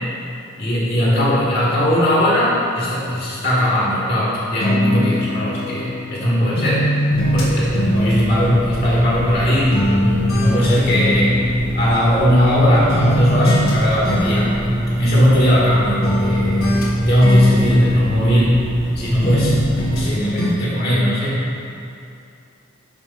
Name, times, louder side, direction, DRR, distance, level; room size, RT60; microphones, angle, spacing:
voice 1, 0.6-6.8 7.3-11.4 11.7-18.6 18.9-21.5, equal, 45° left, -7 dB, 1.7 m, -18 dB
sound 1, 4.6-6.2 6.6-9.4 9.7-12.6 12.9-13.8 14.0-15.7 16.0-18.9 19.2-20.1 20.4-20.5, left 1 dB, 85° left, 1.6 m, -23 dB
sound 2, 7.1-20.1, right 1 dB, 20° right, 0.7 m, -23 dB
5.9 x 5.7 x 5.4 m, 2.6 s
head